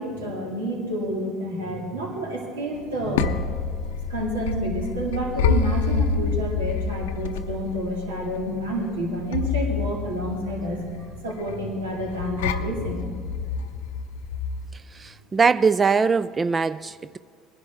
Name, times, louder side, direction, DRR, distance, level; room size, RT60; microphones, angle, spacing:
voice 1, 0.0-3.4 4.1-13.1, right 1 dB, 85° right, 2.2 m, -29 dB
sound 1, 2.8-14.7, left 5 dB, 80° left, 0.6 m, -28 dB
voice 2, 14.9-17.2, right 5 dB, 30° right, 0.3 m, -22 dB
20.0 x 11.0 x 3.5 m
hypercardioid pair, 70°, 0 cm